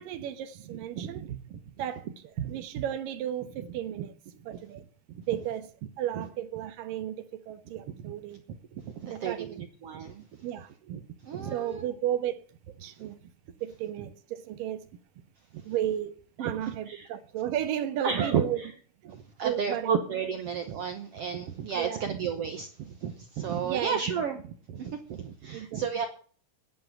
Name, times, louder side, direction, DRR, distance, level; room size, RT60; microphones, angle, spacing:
voice 1, 0.0-1.4 1.8-4.1 4.5-4.8 5.3-5.7 6.0-8.4 9.1-9.6 10.4-10.7 11.5-12.4 12.8-13.2 13.6-14.9 15.6-18.6 19.1-20.0 21.7-22.1 23.6-24.0 25.5-25.9, right 11 dB, 90° right, 2.9 m, -34 dB
voice 2, 0.7-1.6 3.6-3.7 4.0-4.1 5.1-5.2 6.2-6.3 8.0-8.1 8.8-10.3 10.9-11.9 13.0-13.1 15.5-15.6 16.4-16.5 16.9-17.1 18.0-18.7 19.0-26.1, right 7 dB, 60° right, 1.7 m, -33 dB
10.5 x 8.2 x 9.0 m
omnidirectional pair, 3.8 m